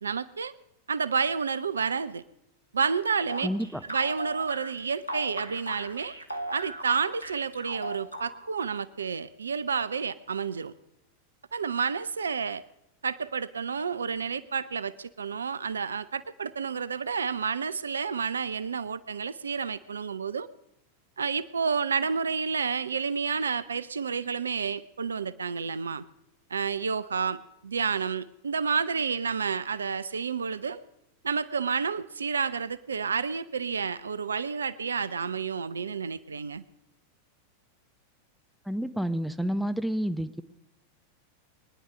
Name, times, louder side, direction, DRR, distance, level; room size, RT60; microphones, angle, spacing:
voice 1, 0.0-0.5 0.9-2.2 2.7-3.5 3.9-6.1 6.5-10.7 11.5-12.6 13.0-20.5 21.2-26.0 26.5-30.8 31.2-36.6, right 5 dB, 70° right, 17 dB, 0.5 m, -30 dB
sound 1, 3.3-8.6, right 1 dB, 85° left, 1.7 m, -38 dB
voice 2, 3.4-3.8 38.7-40.4, equal, ahead, 10 dB, 0.8 m, -29 dB
22.5 x 10.5 x 6.3 m, 0.85 s
figure-of-eight pair, 90°, 0 cm